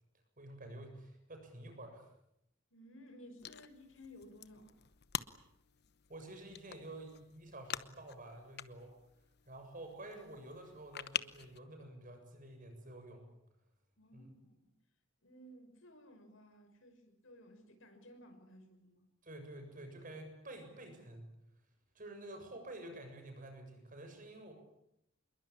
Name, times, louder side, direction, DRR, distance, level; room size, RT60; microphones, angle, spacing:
voice 1, 0.4-2.1 6.1-8.9 9.5-13.2 14.1-14.3 19.2-21.3 21.9-24.5, right 1 dB, 45° right, 5 dB, 7.2 m, -50 dB
voice 2, 2.7-4.7 14.0-14.7 15.2-19.1, equal, 70° left, 6 dB, 5.9 m, -57 dB
sound 1, 3.4-11.6, left 9 dB, 55° left, 1.0 m, -46 dB
27.0 x 22.5 x 8.8 m, 0.78 s
head